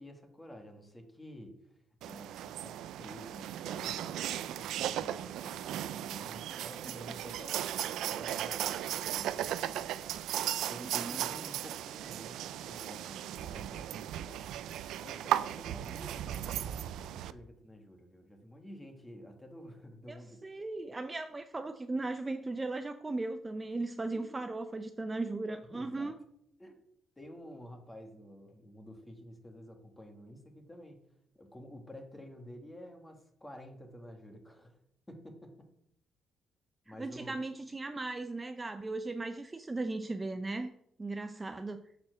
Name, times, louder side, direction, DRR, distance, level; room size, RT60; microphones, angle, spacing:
voice 1, 0.0-7.8 8.1-9.6 9.9-10.2 10.7-14.1 15.0-20.4 24.1-24.2 25.6-26.2 26.6-26.8 27.2-31.0 31.3-34.8 35.1-35.7 36.8-37.4, equal, 15° left, 4 dB, 1.7 m, -50 dB
sound 1, 2.0-17.3, right 11 dB, 85° right, 0.3 m, -36 dB
voice 2, 10.7-11.3 20.1-26.2 36.9-40.7 41.0-41.8, right 2 dB, 20° right, 8 dB, 0.5 m, -37 dB
6.8 x 4.2 x 6.2 m, 0.75 s
cardioid pair, 90°, 0 cm